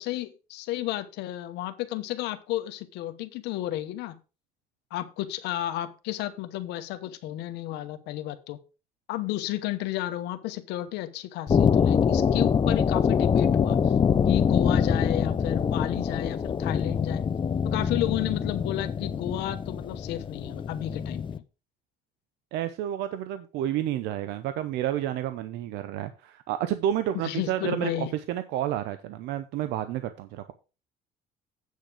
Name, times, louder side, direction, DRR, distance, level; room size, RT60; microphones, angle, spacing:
voice 1, 0.0-4.2 4.9-8.6 9.1-13.9 14.2-17.3 17.6-21.2 27.2-28.1, left 14 dB, 90° left, 9 dB, 1.0 m, -32 dB
sound 1, 11.5-21.4, left 7 dB, 30° left, 0.6 m, -24 dB
voice 2, 22.5-30.5, right 11 dB, 90° right, 11 dB, 0.7 m, -30 dB
8.4 x 6.5 x 4.9 m, 0.32 s
cardioid pair, 110°, 17 cm